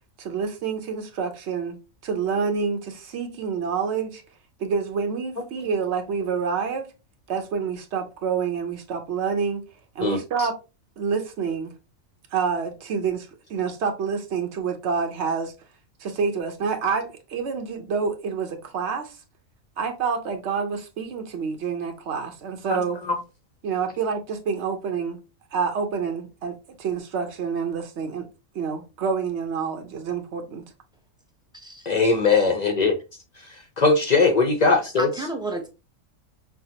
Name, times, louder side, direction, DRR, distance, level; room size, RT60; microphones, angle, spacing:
voice 1, 0.2-4.2 4.6-6.9 7.3-9.6 9.9-10.6 11.0-11.7 12.3-15.5 16.0-19.2 19.8-23.0 23.6-25.2 25.5-28.3 28.5-30.6, right 5 dB, 60° right, 1.0 m, -27 dB
voice 2, 22.7-23.2 31.9-33.0 33.4-35.1, left 4 dB, 55° left, 0.4 m, -20 dB
voice 3, 31.5-31.9 35.0-35.7, right 1 dB, 5° right, 0.4 m, -31 dB
5.7 x 2.1 x 2.7 m
omnidirectional pair, 1.4 m